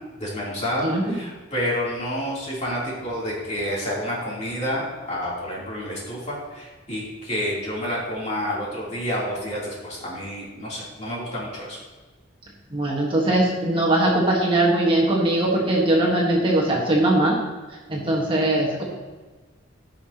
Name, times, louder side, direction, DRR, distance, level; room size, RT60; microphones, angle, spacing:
voice 1, 0.2-11.8, equal, 35° left, -6 dB, 3.2 m, -29 dB
voice 2, 0.8-1.1 12.7-17.4 17.9-18.8, right 1 dB, 25° right, -3 dB, 1.5 m, -20 dB
16.0 x 5.8 x 2.9 m, 1.3 s
head